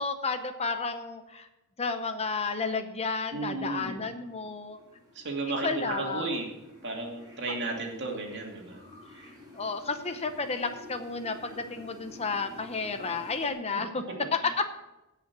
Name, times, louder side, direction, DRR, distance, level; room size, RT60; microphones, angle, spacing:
voice 1, 0.0-1.5 1.8-4.8 5.6-6.3 7.5-7.6 9.0-9.1 9.5-14.0 14.3-14.6, left 4 dB, 30° left, 8 dB, 0.8 m, -32 dB
voice 2, 3.3-4.0 5.2-6.5 6.8-8.8 14.4-14.7, right 3 dB, 55° right, 0 dB, 2.5 m, -34 dB
sound 1, 4.2-13.5, left 1 dB, 20° right, 3.7 m, -51 dB
16.5 x 5.8 x 6.0 m, 0.96 s
head